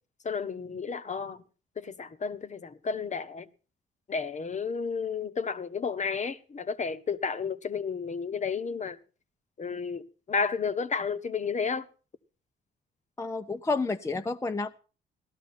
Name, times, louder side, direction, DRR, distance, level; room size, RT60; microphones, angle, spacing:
voice 1, 0.2-1.4 1.8-3.5 4.1-9.0 9.6-11.9, left 5 dB, 35° left, 1.0 m, -32 dB
voice 2, 13.2-14.8, left 3 dB, 15° left, 0.7 m, -30 dB
17.0 x 12.5 x 4.3 m
cardioid pair, 90°, 20 cm